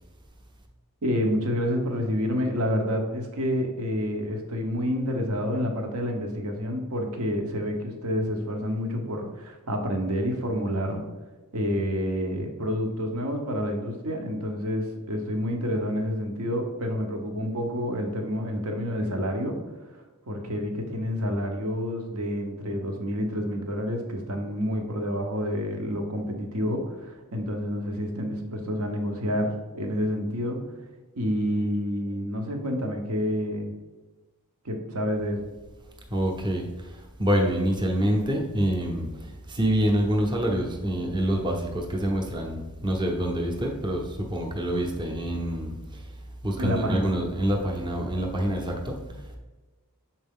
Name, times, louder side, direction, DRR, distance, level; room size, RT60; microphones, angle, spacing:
voice 1, 1.0-11.0 11.5-19.6 19.9-20.0 20.3-29.5 29.7-30.6 31.2-33.7 34.6-35.5 46.6-47.1, equal, 75° right, 3 dB, 1.0 m, -28 dB
voice 2, 36.1-46.2 46.4-49.4, right 1 dB, 20° right, 0 dB, 0.7 m, -27 dB
6.7 x 4.3 x 3.6 m, 1.2 s
head